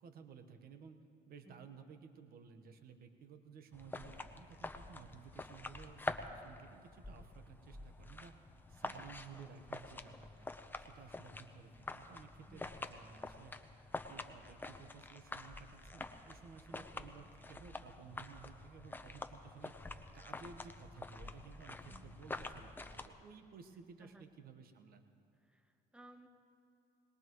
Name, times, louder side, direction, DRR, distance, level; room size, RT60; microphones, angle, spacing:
voice 1, 0.0-8.3 8.7-10.5 10.8-13.5 13.9-19.7 20.1-25.0, right 6 dB, 65° right, 7 dB, 1.2 m, -56 dB
sound 1, 3.7-23.1, left 2 dB, 10° left, 0.7 m, -47 dB
voice 2, 23.7-24.2 25.4-26.3, right 2 dB, 5° right, 6 dB, 1.0 m, -60 dB
22.0 x 20.0 x 3.1 m, 2.6 s
cardioid pair, 110°, 17 cm